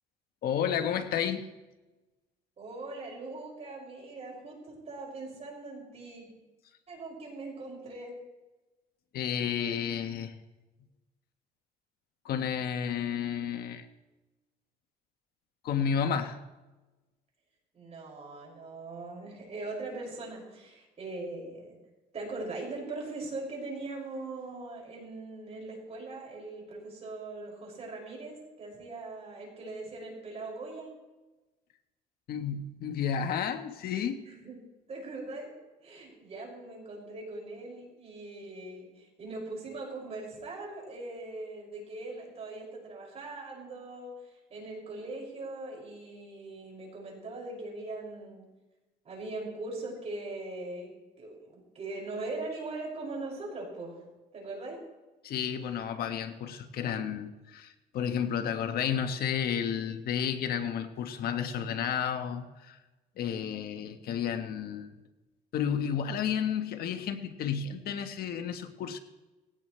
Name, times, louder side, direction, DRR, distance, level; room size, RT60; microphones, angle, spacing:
voice 1, 0.4-1.5 9.1-10.3 12.2-13.8 15.6-16.4 32.3-34.2 55.2-62.8 63.2-64.9 65.5-69.0, left 8 dB, 65° left, 7 dB, 1.4 m, -31 dB
voice 2, 2.6-6.3 6.9-8.1 17.7-21.8 22.1-30.9 34.2-34.6 34.9-35.5 35.8-44.1 44.5-48.4 49.0-50.9 51.2-54.0 54.3-54.8, right 2 dB, 40° right, -2 dB, 6.5 m, -40 dB
18.5 x 16.5 x 3.3 m, 1.1 s
cardioid pair, 110°, 17 cm